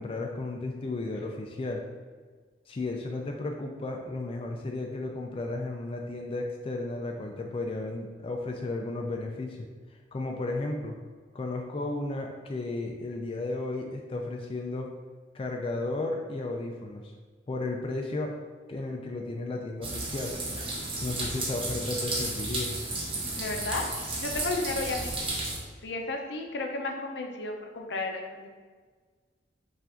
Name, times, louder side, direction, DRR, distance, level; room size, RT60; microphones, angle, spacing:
voice 1, 0.0-1.8 2.7-9.7 10.1-11.0 11.3-14.9 15.3-17.1 17.5-18.3 18.7-20.4 21.0-22.7, left 2 dB, 30° left, 1 dB, 0.4 m, -34 dB
sound 1, 19.8-25.6, right 2 dB, 30° right, 0.9 m, -33 dB
voice 2, 23.4-23.8 24.2-25.1 25.8-28.5, left 3 dB, 75° left, 2 dB, 0.7 m, -33 dB
5.6 x 2.5 x 3.7 m, 1.5 s
head